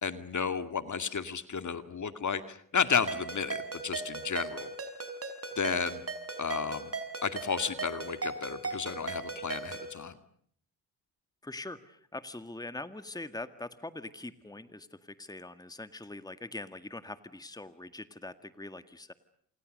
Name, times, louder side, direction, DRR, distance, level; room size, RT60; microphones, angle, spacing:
voice 1, 0.0-4.7 5.6-6.0 6.4-6.9 7.2-10.1, left 6 dB, 40° left, 10 dB, 2.3 m, -32 dB
Ringtone, 3.1-9.9, right 4 dB, 30° right, 4.9 m, -38 dB
voice 2, 11.4-19.1, left 2 dB, 10° left, 11 dB, 1.9 m, -43 dB
29.0 x 28.0 x 6.6 m, 0.66 s
hypercardioid pair, 45°, 44 cm